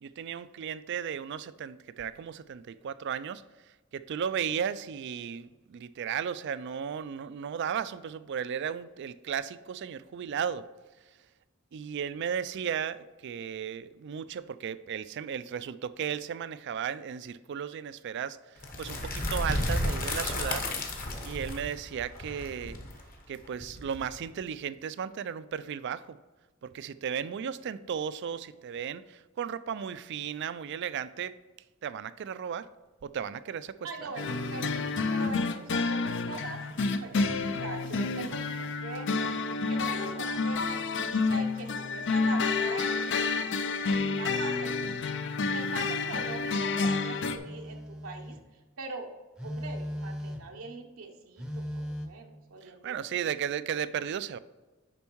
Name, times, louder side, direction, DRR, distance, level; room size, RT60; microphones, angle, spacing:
voice 1, 0.0-3.4 3.9-10.6 11.7-18.4 18.8-20.7 21.2-22.8 23.3-26.2 26.6-31.3 31.8-32.7 33.0-34.1 37.2-37.6 52.6-54.4, right 8 dB, 55° right, 0.3 m, -35 dB
sound 1, 18.6-24.4, left 1 dB, 45° left, 1.2 m, -33 dB
voice 2, 33.8-34.7 35.1-39.1 39.6-43.3 43.8-45.0 45.5-48.4 48.8-49.1 49.4-53.3, right 3 dB, 80° right, 0.8 m, -42 dB
sound 2, 34.2-47.4, left 4 dB, 60° left, 0.5 m, -29 dB
Telephone, 46.2-46.5 47.4-48.5 49.4-50.6 51.4-52.1, equal, 5° right, 0.7 m, -38 dB
7.0 x 5.3 x 4.5 m
head